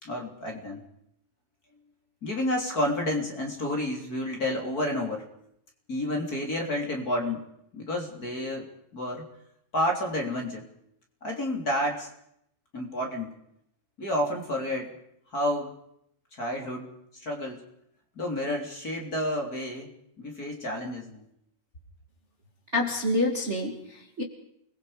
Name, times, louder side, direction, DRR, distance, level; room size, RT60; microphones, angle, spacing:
voice 1, 0.0-0.8 2.2-5.3 5.9-7.4 7.7-8.7 8.9-9.3 9.7-10.7 11.2-12.1 12.7-13.3 14.0-15.0 15.3-15.7 16.3-16.9 17.1-17.6 18.2-19.9 20.2-21.2, left 1 dB, 30° left, 2 dB, 3.6 m, -30 dB
voice 2, 22.7-24.2, left 1 dB, 25° right, 2 dB, 2.3 m, -27 dB
29.0 x 21.5 x 5.1 m, 0.73 s
omnidirectional pair, 3.6 m